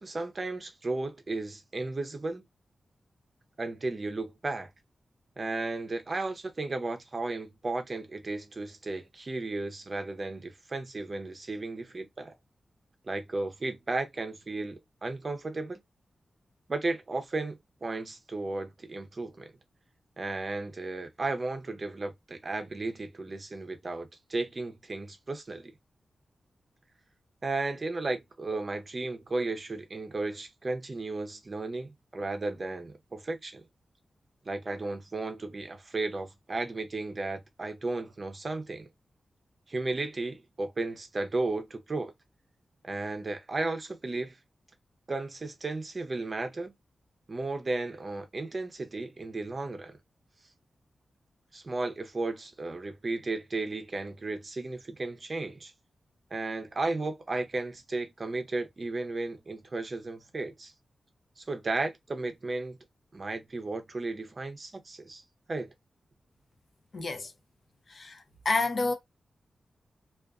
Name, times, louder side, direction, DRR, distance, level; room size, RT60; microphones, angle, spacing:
voice 1, 0.0-2.4 3.6-4.7 5.4-12.3 13.0-15.8 16.7-19.5 20.2-25.7 27.4-33.6 34.5-38.9 39.7-42.1 42.8-44.4 45.1-46.7 47.3-50.0 51.5-55.7 56.3-60.7 61.4-62.8 63.1-65.2 65.5-65.7, right 2 dB, 35° right, 0.6 m, -34 dB
voice 2, 66.9-67.3 67.9-68.9, left 3 dB, 45° left, 0.7 m, -29 dB
2.5 x 2.3 x 2.3 m
wide cardioid pair, 135°, 0 cm